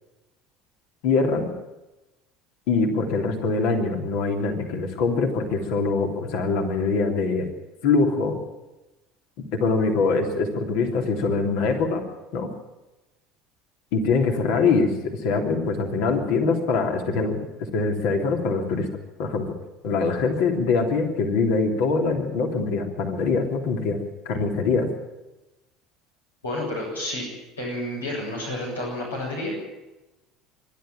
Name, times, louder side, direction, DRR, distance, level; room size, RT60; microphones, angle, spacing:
voice 1, 1.0-1.5 2.7-7.5 7.8-8.4 9.5-12.0 12.3-12.5 13.9-18.9 19.2-19.5 19.8-24.0 24.2-24.9, left 4 dB, 60° left, 3 dB, 3.2 m, -23 dB
voice 2, 26.4-29.5, left 1 dB, 85° left, -3 dB, 7.4 m, -30 dB
25.0 x 12.0 x 9.0 m, 1.1 s
figure-of-eight pair, 65°, 0 cm